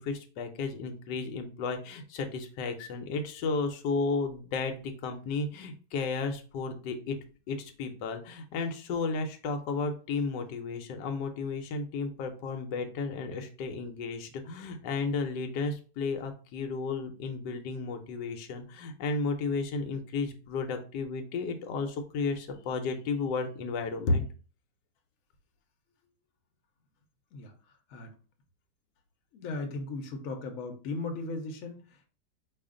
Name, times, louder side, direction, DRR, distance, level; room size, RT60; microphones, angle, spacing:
voice 1, 0.0-7.2 7.5-24.2, left 4 dB, 85° left, 6 dB, 1.3 m, -33 dB
voice 2, 29.3-32.1, left 3 dB, 60° left, 4 dB, 1.1 m, -37 dB
4.9 x 2.5 x 3.7 m, 0.37 s
omnidirectional pair, 1.8 m